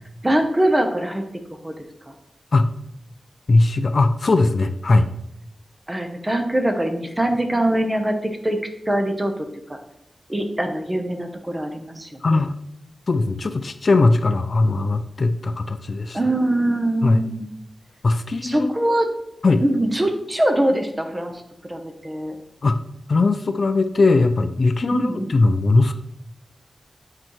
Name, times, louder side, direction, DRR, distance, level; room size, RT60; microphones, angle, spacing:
voice 1, 0.2-1.2 1.6-1.7 2.1-2.2 5.9-8.6 8.9-9.8 10.3-12.4 16.1-17.5 18.4-19.1 19.6-22.4 24.9-25.3, right 1 dB, 15° right, 5 dB, 0.7 m, -23 dB
voice 2, 3.5-5.1 12.2-12.6 13.1-16.2 17.0-17.2 18.0-18.7 19.4-19.6 22.6-22.8 23.1-25.9, left 3 dB, 50° left, 9 dB, 0.3 m, -19 dB
7.7 x 4.3 x 3.0 m, 0.80 s
wide cardioid pair, 120°, 0 cm